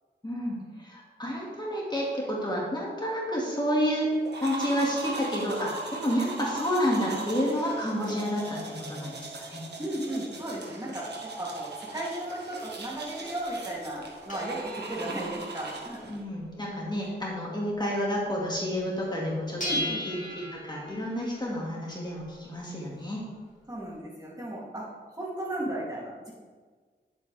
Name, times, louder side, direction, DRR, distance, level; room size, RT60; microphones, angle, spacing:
voice 1, 0.2-4.1 4.4-9.7 16.1-23.2, equal, 20° left, -4 dB, 2.3 m, -30 dB
sound 1, 4.2-16.2, right 3 dB, 60° right, 1.6 m, -39 dB
voice 2, 9.8-11.1 11.4-16.0 19.6-20.4 23.7-26.3, right 1 dB, 20° right, -5 dB, 3.0 m, -35 dB
sound 2, 12.8-18.3 18.6-18.7 19.0-23.9, equal, 40° left, 2.8 m, -40 dB
10.5 x 7.8 x 3.5 m, 1.5 s
wide cardioid pair, 75°, 19 cm